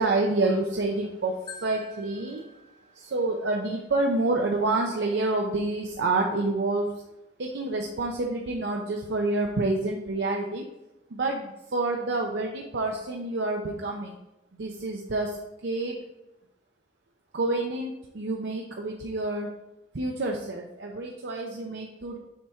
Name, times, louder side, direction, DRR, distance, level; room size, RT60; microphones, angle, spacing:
voice 1, 0.0-2.4 2.9-6.9 7.4-10.7 11.1-14.1 14.6-16.0 17.3-19.5 19.9-22.2, right 2 dB, 70° right, 1 dB, 0.6 m, -28 dB
Marimba xylophone, 1.5-3.5, left 3 dB, 25° left, 0.7 m, -47 dB
7.3 x 3.6 x 4.4 m, 0.94 s
head